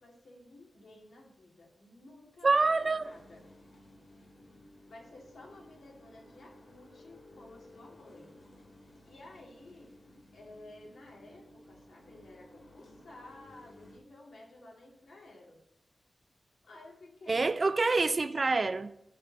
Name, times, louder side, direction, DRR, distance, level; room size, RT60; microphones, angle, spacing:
voice 1, 0.0-3.4 4.9-8.3 9.0-9.9 10.3-15.6 16.6-17.6, left 2 dB, 80° left, 2.4 m, -53 dB
voice 2, 2.4-3.1 17.3-18.9, right 3 dB, 40° right, 0.4 m, -26 dB
sound 1, 2.6-14.0, left 1 dB, 55° left, 2.3 m, -56 dB
6.6 x 6.4 x 6.0 m
wide cardioid pair, 125°, 0 cm